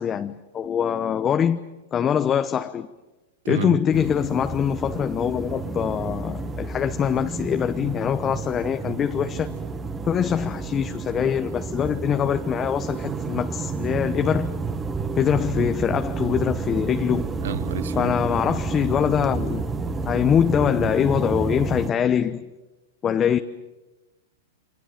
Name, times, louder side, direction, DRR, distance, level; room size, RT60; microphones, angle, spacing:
voice 1, 0.0-1.6 1.9-2.9 3.5-9.5 10.1-14.5 15.2-17.3 18.0-19.6 20.1-22.5 23.0-23.4, left 8 dB, 25° left, 1.0 m, -23 dB
voice 2, 3.4-3.8 17.4-18.1, right 9 dB, 75° right, 1.1 m, -30 dB
sound 1, 3.9-21.9, right 4 dB, 20° right, 1.6 m, -30 dB
29.5 x 24.0 x 7.5 m
hypercardioid pair, 120°, 0 cm